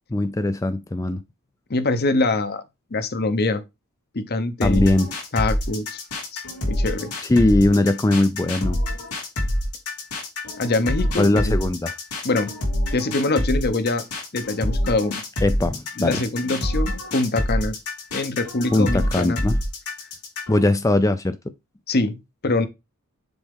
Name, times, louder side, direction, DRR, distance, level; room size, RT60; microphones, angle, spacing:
voice 1, 0.1-1.2 4.6-5.1 7.2-8.8 11.2-11.9 15.4-16.2 18.7-19.6 20.5-21.5, left 2 dB, 15° left, 0.3 m, -20 dB
voice 2, 1.7-2.6 2.9-3.6 4.1-4.8 5.3-6.0 6.3-7.1 10.6-11.6 12.2-12.5 12.9-14.1 14.3-15.2 16.0-17.7 18.1-19.4 21.9-22.7, left 2 dB, 45° left, 0.8 m, -24 dB
sound 1, 4.6-20.6, left 1 dB, 85° left, 3.4 m, -26 dB
7.1 x 4.7 x 3.6 m
head